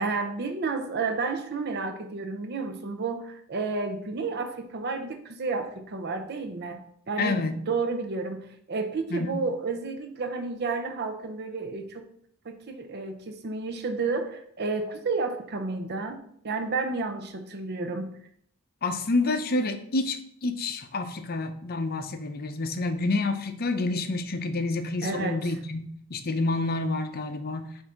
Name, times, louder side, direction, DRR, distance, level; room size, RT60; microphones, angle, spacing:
voice 1, 0.0-12.1 12.4-16.2 16.4-18.1 25.0-25.4, right 4 dB, 50° right, 6 dB, 0.6 m, -31 dB
voice 2, 7.2-7.6 9.1-9.5 18.8-27.7, left 2 dB, 45° left, 8 dB, 0.6 m, -28 dB
7.8 x 2.7 x 4.9 m, 0.67 s
head